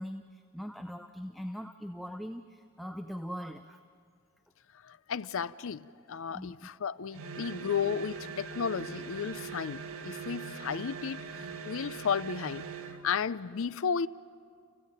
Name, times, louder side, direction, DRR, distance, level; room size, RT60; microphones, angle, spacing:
voice 1, 0.0-3.8 6.3-6.6, equal, ahead, 0.6 m, -41 dB
voice 2, 4.8-12.7 13.0-14.1, left 6 dB, 65° left, 0.5 m, -33 dB
sound 1, 7.1-13.1, right 6 dB, 85° right, 1.4 m, -42 dB
29.0 x 16.0 x 9.1 m
head